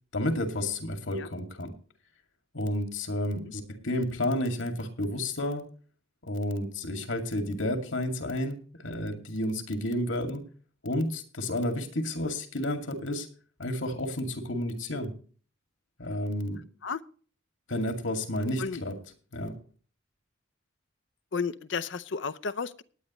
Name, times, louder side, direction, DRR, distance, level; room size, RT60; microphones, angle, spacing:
voice 1, 0.1-1.7 2.5-5.7 6.2-10.5 10.8-13.3 13.6-15.2 16.0-16.6 17.7-19.0 19.3-19.6, left 1 dB, 80° left, 5 dB, 2.4 m, -31 dB
voice 2, 21.3-22.8, left 5 dB, 65° left, 11 dB, 0.6 m, -32 dB
19.5 x 9.3 x 3.1 m, 0.42 s
head